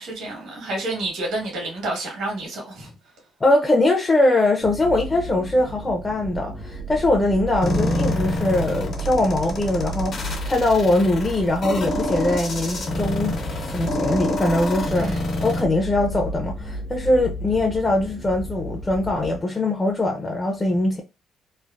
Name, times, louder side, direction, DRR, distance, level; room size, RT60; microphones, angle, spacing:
voice 1, 0.0-2.9 14.9-15.2, right 2 dB, 85° right, 1.4 m, -29 dB
voice 2, 3.4-13.4 13.7-21.0, left 2 dB, 25° left, 0.6 m, -22 dB
sound 1, 4.6-19.4, right 1 dB, 70° right, 0.9 m, -33 dB
sound 2, 7.6-15.6, left 2 dB, 60° left, 1.0 m, -27 dB
3.2 x 2.0 x 2.4 m
cardioid pair, 90°, 0 cm